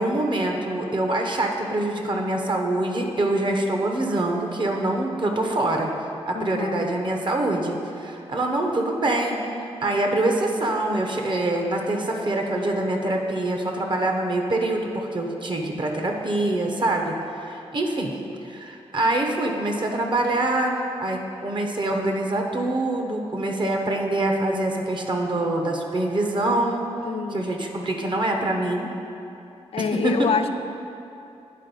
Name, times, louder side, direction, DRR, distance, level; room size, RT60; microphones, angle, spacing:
voice 1, 0.0-5.9 6.3-18.2 18.4-26.8 27.3-28.9 29.8-30.3, right 1 dB, 45° right, 2 dB, 1.0 m, -25 dB
voice 2, 6.3-6.9 27.0-27.5 29.7-30.5, left 6 dB, 60° left, 9 dB, 0.4 m, -26 dB
9.7 x 4.0 x 5.4 m, 2.7 s
cardioid pair, 80°, 11 cm